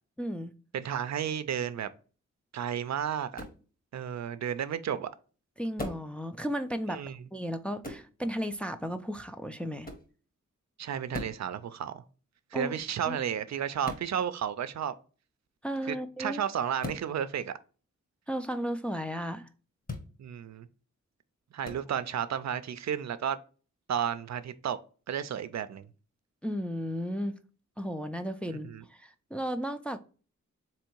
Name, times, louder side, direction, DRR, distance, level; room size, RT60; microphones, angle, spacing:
voice 1, 0.2-0.5 5.6-7.0 7.3-9.9 12.5-12.7 13.1-13.2 15.6-16.4 18.3-19.5 26.4-27.4 27.8-30.0, equal, 5° left, 0.4 m, -34 dB
voice 2, 0.7-1.9 2.5-3.4 3.9-5.1 6.9-7.2 10.8-12.0 12.5-14.9 15.9-17.5 20.2-20.7 21.5-23.4 23.9-24.8 25.1-25.9 28.6-28.8, right 9 dB, 65° right, 0.4 m, -32 dB
sound 1, 3.3-3.6 5.8-6.1 7.8-8.1 9.8-10.1 11.1-11.4 13.8-14.1 16.8-17.1 19.8-20.1 21.6-21.8, left 2 dB, 30° left, 1.2 m, -39 dB
3.6 x 3.0 x 4.5 m
cardioid pair, 65°, 29 cm